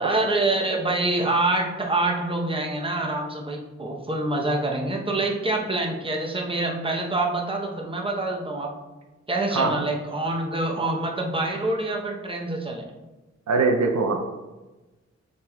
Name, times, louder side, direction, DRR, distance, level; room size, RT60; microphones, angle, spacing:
voice 1, 0.0-8.7 9.3-12.8, right 2 dB, 20° right, 0 dB, 0.8 m, -26 dB
voice 2, 9.5-9.9 13.5-14.2, right 4 dB, 70° right, 3 dB, 0.6 m, -22 dB
6.5 x 3.4 x 2.3 m, 1.1 s
cardioid pair, 60°, 29 cm